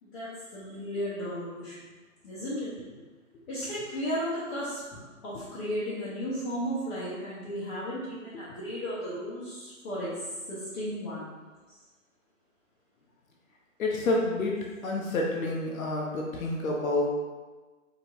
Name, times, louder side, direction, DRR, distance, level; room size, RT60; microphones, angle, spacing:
voice 1, 0.0-1.8 2.2-2.7 3.5-10.1 10.5-11.3, equal, 35° left, -11 dB, 1.2 m, -34 dB
voice 2, 13.8-14.6 14.8-17.1, left 2 dB, 80° left, -2 dB, 0.9 m, -28 dB
5.0 x 3.3 x 2.6 m, 1.3 s
hypercardioid pair, 155°, 41 cm